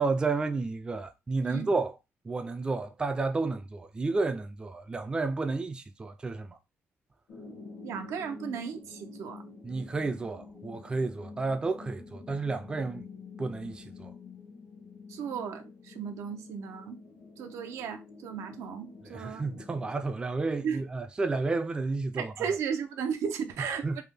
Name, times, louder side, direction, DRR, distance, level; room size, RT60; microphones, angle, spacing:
voice 1, 0.0-2.0 2.2-6.6 9.6-13.1 13.4-14.1 19.1-22.3 23.6-24.0, right 3 dB, 20° right, 0.4 m, -31 dB
sound 1, 7.3-19.9, left 4 dB, 70° left, 0.9 m, -48 dB
voice 2, 7.8-9.4 15.1-17.0 17.4-19.4 20.6-20.8 22.1-23.9, right 7 dB, 90° right, 0.5 m, -35 dB
3.3 x 2.2 x 3.4 m
cardioid pair, 125°, 5 cm